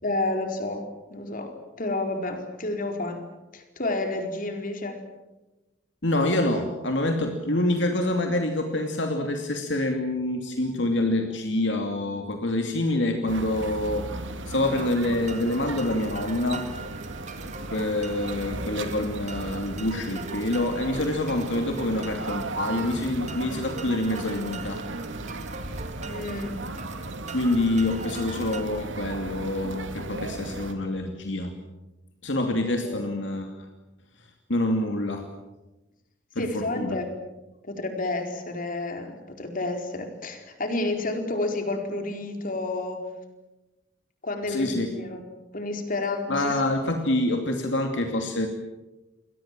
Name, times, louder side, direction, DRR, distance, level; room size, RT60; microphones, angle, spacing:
voice 1, 0.0-3.2 3.5-5.0 26.1-26.6 32.8-33.1 36.4-37.2 37.6-43.0 44.2-45.3 45.5-46.5, left 2 dB, 45° left, 5 dB, 4.4 m, -30 dB
voice 2, 6.0-14.1 14.5-16.7 17.7-24.8 27.3-31.5 32.2-33.7 34.5-35.2 36.4-37.0 44.5-44.9 46.3-48.5, left 1 dB, 70° left, 4 dB, 2.6 m, -26 dB
sound 1, 13.3-30.7, right 2 dB, 85° right, 2.5 m, -36 dB
sound 2, 14.7-28.6, right 5 dB, 40° right, 2.5 m, -43 dB
29.5 x 22.5 x 7.5 m, 1.1 s
head